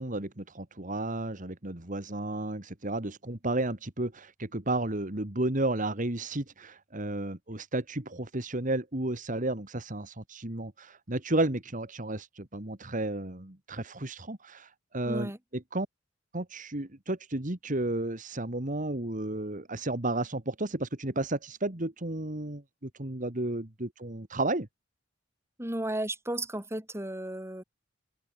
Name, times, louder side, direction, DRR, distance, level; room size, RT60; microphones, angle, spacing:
voice 1, 0.0-15.9 16.3-24.7, right 2 dB, 45° right, 2.3 m, -32 dB
voice 2, 15.1-15.4 25.6-27.6, right 1 dB, 15° right, 4.3 m, -34 dB
open air
head